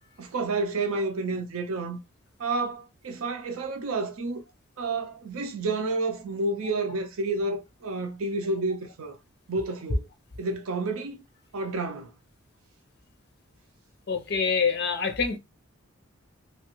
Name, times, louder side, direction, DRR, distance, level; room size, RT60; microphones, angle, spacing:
voice 1, 0.2-2.0 2.4-4.4 4.8-9.2 9.5-10.1 10.4-11.2 11.5-12.1, right 3 dB, 80° right, 0.6 m, -30 dB
voice 2, 14.1-15.4, left 5 dB, 50° left, 0.6 m, -26 dB
3.0 x 2.3 x 3.0 m
head